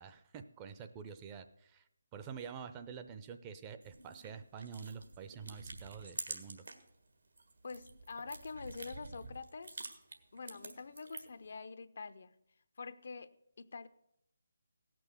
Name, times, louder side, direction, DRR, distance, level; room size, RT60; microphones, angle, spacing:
voice 1, 0.0-1.8 2.1-6.6, right 6 dB, 20° right, 8 dB, 0.6 m, -47 dB
sound 1, 3.8-6.9 7.2-11.5, right 3 dB, 75° right, 1.5 m, -48 dB
voice 2, 7.6-9.8 10.3-12.4 12.8-13.9, left 4 dB, 55° left, 12 dB, 0.6 m, -46 dB
16.5 x 6.1 x 6.9 m, 0.79 s
figure-of-eight pair, 150°, 0 cm